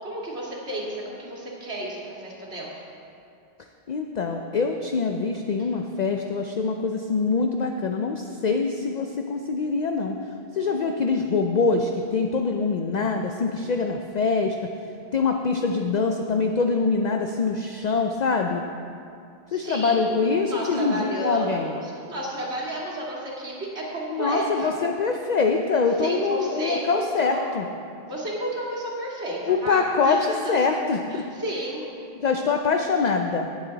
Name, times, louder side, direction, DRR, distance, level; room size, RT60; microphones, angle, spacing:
voice 1, 0.0-2.7 19.5-20.2 20.5-24.7 26.0-27.4 28.1-30.6 31.1-31.9, right 1 dB, 85° right, -4 dB, 2.4 m, -32 dB
voice 2, 3.9-10.2 10.5-14.6 15.1-18.6 19.5-21.8 24.1-27.7 29.5-31.3 32.2-33.5, left 4 dB, 50° left, 4 dB, 0.6 m, -24 dB
18.0 x 7.3 x 4.0 m, 2.5 s
omnidirectional pair, 1.1 m